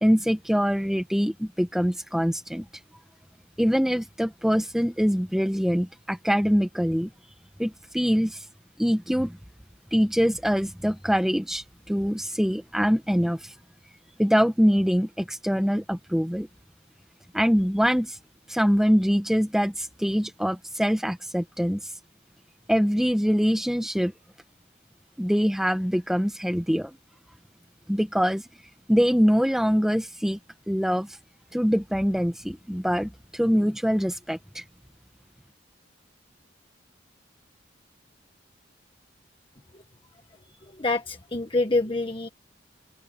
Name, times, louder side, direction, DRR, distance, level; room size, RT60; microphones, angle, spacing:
voice 1, 0.0-2.7 3.6-7.1 7.6-8.4 8.8-9.4 9.9-13.5 14.2-16.5 17.3-18.2 18.5-21.9 22.7-24.1 25.2-26.9 27.9-28.4 28.9-30.4 30.7-31.2 31.5-34.6, equal, ahead, 1.1 m, -24 dB
voice 2, 40.8-42.3, left 2 dB, 30° left, 1.4 m, -26 dB
open air
head